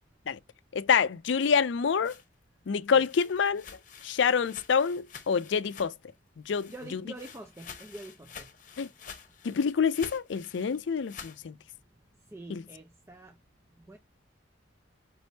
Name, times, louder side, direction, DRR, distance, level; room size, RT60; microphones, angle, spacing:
voice 1, 0.7-2.1 2.7-3.6 4.0-5.9 6.5-7.0 8.8-8.9 9.4-11.5 12.5-12.6, left 6 dB, 70° left, 0.4 m, -27 dB
sound 1, 1.9-6.2 6.4-11.4, left 6 dB, 40° left, 0.9 m, -49 dB
voice 2, 6.7-8.5 12.3-13.4 13.9-14.0, right 1 dB, 15° right, 0.5 m, -45 dB
5.2 x 3.4 x 2.7 m
head